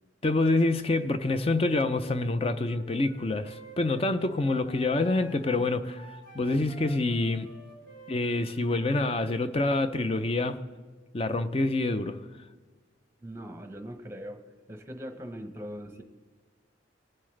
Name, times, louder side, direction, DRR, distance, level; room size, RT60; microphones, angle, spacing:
voice 1, 0.2-6.1 6.3-7.5 8.1-10.6 11.1-12.2, left 2 dB, 30° left, 0.5 m, -27 dB
Wind instrument woodwind instrument, 2.6-9.1, equal, 80° left, 3.1 m, -51 dB
voice 2, 13.2-14.4 14.7-16.0, equal, 15° right, 0.9 m, -41 dB
19.0 x 7.4 x 3.3 m
head